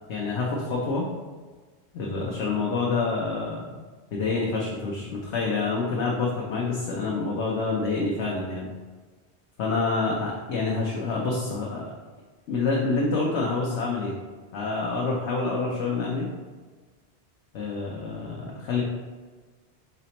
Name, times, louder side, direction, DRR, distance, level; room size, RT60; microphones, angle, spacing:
voice 1, 0.1-1.1 1.9-3.7 4.1-8.7 9.6-11.8 12.5-14.2 14.5-16.3 17.5-18.8, left 3 dB, 85° left, -3 dB, 1.0 m, -27 dB
4.2 x 4.1 x 2.9 m, 1.4 s
omnidirectional pair, 1.1 m